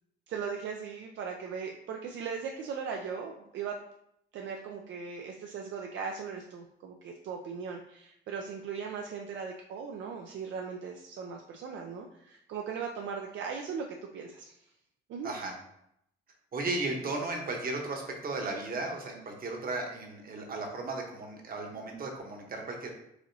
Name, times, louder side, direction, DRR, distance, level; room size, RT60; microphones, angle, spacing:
voice 1, 0.3-3.8 4.3-13.9 14.1-14.5 15.1-15.3, right 6 dB, 70° right, 2 dB, 0.4 m, -38 dB
voice 2, 15.2-15.5 16.5-22.9, right 2 dB, 45° right, 1 dB, 1.0 m, -35 dB
4.8 x 2.9 x 2.7 m, 0.77 s
cardioid pair, 90°, 20 cm